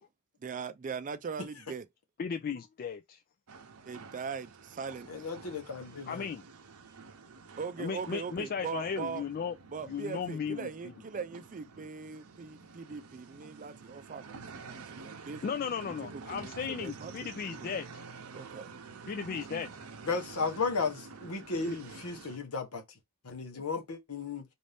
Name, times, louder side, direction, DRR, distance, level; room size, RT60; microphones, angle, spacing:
voice 1, 0.4-1.9 3.9-5.3 7.6-9.2 9.7-17.3 17.6-17.7 18.3-18.7, right 5 dB, 35° right, 0.4 m, -41 dB
voice 2, 2.2-3.2 6.1-6.4 7.8-9.5 9.9-10.7 15.4-18.0 19.1-19.7 21.6-21.8 23.5-23.6, left 6 dB, 40° left, 0.3 m, -36 dB
sound 1, 3.5-22.4, right 4 dB, 75° right, 0.7 m, -49 dB
voice 3, 5.1-6.3 20.0-22.8 23.2-24.4, left 4 dB, 75° left, 1.0 m, -34 dB
4.1 x 2.6 x 3.4 m
head